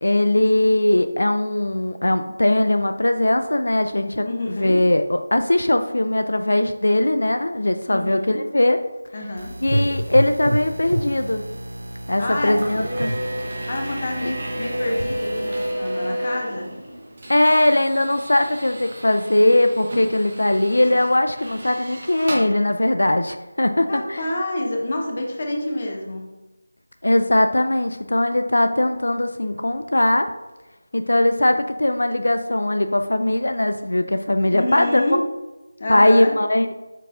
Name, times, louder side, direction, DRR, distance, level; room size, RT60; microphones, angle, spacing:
voice 1, 0.0-8.8 9.6-11.4 12.1-13.1 14.2-14.3 17.3-24.2 27.0-30.3 30.9-35.0 35.9-36.7, left 1 dB, 80° left, 7 dB, 0.3 m, -20 dB
voice 2, 4.2-4.8 7.9-8.5 9.1-9.5 12.2-12.6 13.7-16.7 23.9-26.3 34.5-35.3 35.8-36.3, left 1 dB, 25° left, 1 dB, 0.6 m, -27 dB
sound 1, 9.4-15.7, right 1 dB, 85° right, 0.5 m, -30 dB
Bowed string instrument, 10.6-16.1, equal, 55° left, 1.0 m, -40 dB
sound 2, 12.6-22.4, equal, 20° right, 0.6 m, -32 dB
4.7 x 4.5 x 2.5 m, 1.1 s
figure-of-eight pair, 180°, 0 cm